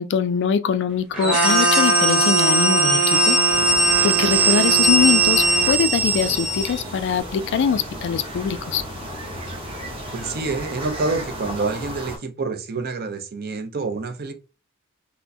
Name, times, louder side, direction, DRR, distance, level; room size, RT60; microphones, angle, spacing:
voice 1, 0.0-3.4 4.0-8.8, left 7 dB, 55° left, 0.3 m, -22 dB
sound 1, 1.1-6.8, right 2 dB, 5° right, 1.1 m, -20 dB
Trumpet, 1.2-5.8, right 3 dB, 70° right, 0.9 m, -23 dB
sound 2, 3.5-12.2, equal, 25° right, 0.9 m, -34 dB
voice 2, 10.1-14.3, right 3 dB, 45° right, 0.6 m, -27 dB
4.3 x 2.1 x 2.7 m
head